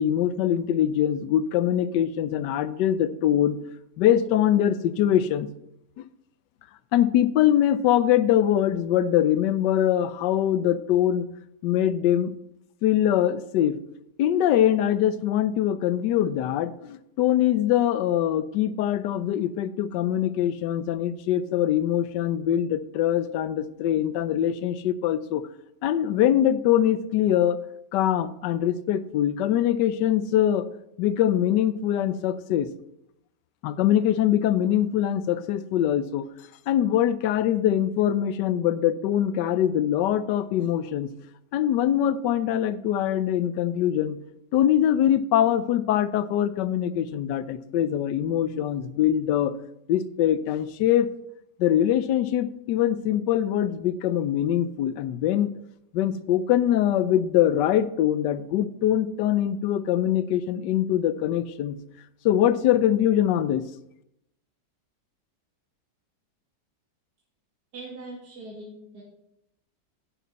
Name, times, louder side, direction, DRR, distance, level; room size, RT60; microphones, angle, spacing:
voice 1, 0.0-3.6 4.0-5.5 6.9-11.3 11.6-12.3 12.8-13.7 14.2-25.4 25.8-27.6 27.9-30.7 31.0-32.7 33.6-36.3 36.7-41.1 41.5-44.2 44.5-49.5 49.9-51.1 51.6-55.5 55.9-61.8 62.2-63.6, left 11 dB, 80° left, 15 dB, 1.3 m, -23 dB
voice 2, 67.7-69.0, right 2 dB, 65° right, -4 dB, 2.5 m, -41 dB
10.0 x 10.0 x 4.1 m, 0.81 s
omnidirectional pair, 1.9 m